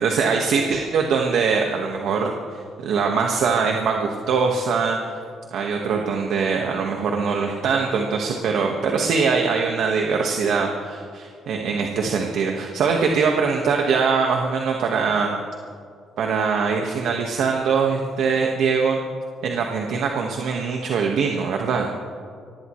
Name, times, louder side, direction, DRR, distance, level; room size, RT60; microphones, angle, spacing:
voice 1, 0.0-5.2 5.5-15.4 16.2-19.0 19.4-21.9, right 5 dB, 75° right, 1 dB, 1.6 m, -22 dB
24.0 x 19.0 x 3.2 m, 2.2 s
cardioid pair, 95°, 0 cm